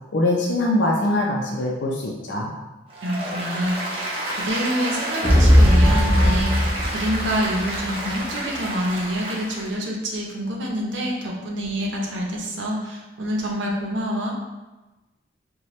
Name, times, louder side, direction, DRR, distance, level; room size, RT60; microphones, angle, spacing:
voice 1, 0.1-2.5, left 1 dB, 75° left, -1 dB, 0.5 m, -22 dB
Applause, 2.9-9.7, right 1 dB, 30° right, 0.7 m, -30 dB
voice 2, 3.0-14.3, equal, 80° right, -1 dB, 0.7 m, -27 dB
sound 1, 5.2-7.8, equal, 10° left, 1.0 m, -17 dB
4.3 x 2.3 x 3.1 m, 1.1 s
head